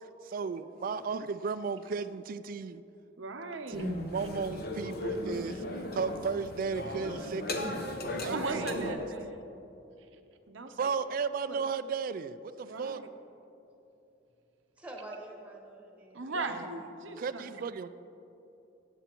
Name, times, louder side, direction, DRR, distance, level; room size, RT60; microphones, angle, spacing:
voice 1, 0.2-2.8 3.7-5.6 5.9-7.7 8.2-9.0 10.8-13.0 16.5-16.7 17.2-17.9, right 5 dB, 45° right, 14 dB, 0.3 m, -35 dB
voice 2, 3.2-4.0 8.2-9.5 10.5-10.9 11.5-11.6 12.6-13.1 16.1-17.6, right 3 dB, 85° right, 6 dB, 0.8 m, -38 dB
sound 1, 3.7-8.9, left 1 dB, 55° left, 0.9 m, -36 dB
voice 3, 14.8-16.5 17.1-17.3, right 1 dB, 5° right, 0 dB, 1.2 m, -47 dB
15.0 x 8.9 x 3.0 m, 2.9 s
head